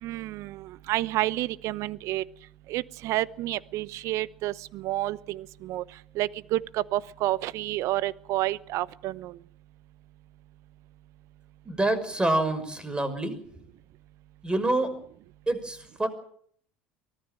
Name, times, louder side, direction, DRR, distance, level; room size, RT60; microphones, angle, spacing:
voice 1, 0.0-2.2 2.7-5.9 6.1-9.4, right 16 dB, 55° right, 19 dB, 0.9 m, -30 dB
voice 2, 11.6-13.3 14.4-14.9 15.5-16.1, right 2 dB, 15° right, 12 dB, 5.9 m, -26 dB
24.0 x 18.0 x 7.6 m, 0.63 s
hypercardioid pair, 70°, 6 cm